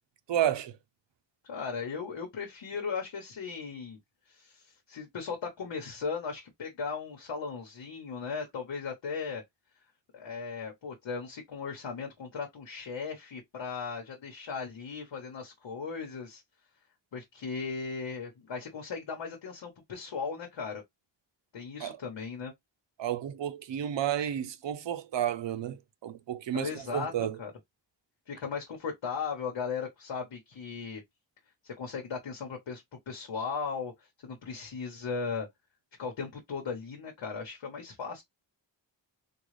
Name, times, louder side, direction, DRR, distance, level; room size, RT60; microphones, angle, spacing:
voice 1, 0.3-0.8 21.8-22.0 23.0-27.4, right 10 dB, 75° right, 0.6 m, -31 dB
voice 2, 1.4-4.0 4.3-9.4 10.1-16.4 17.1-20.8 21.5-22.5 26.5-27.1 27.4-27.5 28.3-31.0 31.6-35.5 36.0-38.2, left 5 dB, 75° left, 1.1 m, -37 dB
3.8 x 2.3 x 3.1 m
wide cardioid pair, 125°, 44 cm